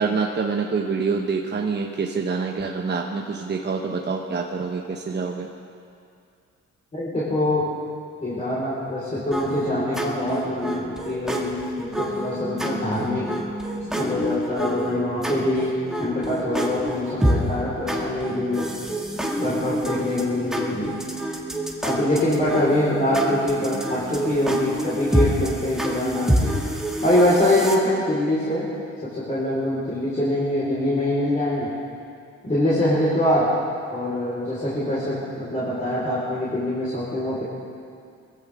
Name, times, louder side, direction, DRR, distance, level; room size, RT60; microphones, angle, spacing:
voice 1, 0.0-5.5, right 5 dB, 35° right, 1 dB, 1.1 m, -26 dB
voice 2, 6.9-7.7 8.2-11.6 11.9-13.3 14.0-15.7 16.0-18.7 19.4-20.9 21.8-26.5 27.0-28.7 29.0-31.7 32.4-33.5 33.9-37.4, left 1 dB, 25° left, -9 dB, 4.8 m, -24 dB
sound 1, 9.3-27.8, right 1 dB, ahead, 2.2 m, -27 dB
21.5 x 15.5 x 3.7 m, 2.4 s
cardioid pair, 90°, 30 cm